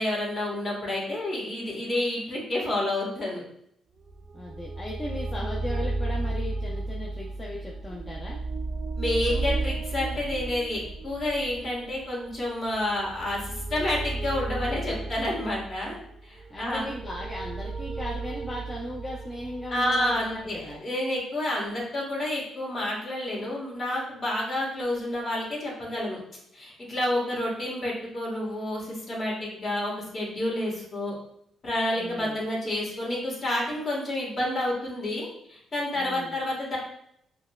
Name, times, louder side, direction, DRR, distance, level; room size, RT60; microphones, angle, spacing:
voice 1, 0.0-3.4 9.0-16.0 16.2-16.8 19.7-26.2 26.5-31.1 31.6-36.8, left 1 dB, 40° left, -4 dB, 1.5 m, -29 dB
sound 1, 4.0-20.8, right 2 dB, 50° right, 0.3 m, -34 dB
voice 2, 4.3-8.4 16.5-20.8 32.0-32.4 35.9-36.4, left 1 dB, 20° left, -4 dB, 0.6 m, -37 dB
5.3 x 2.1 x 2.3 m, 0.72 s
cardioid pair, 90°, 0 cm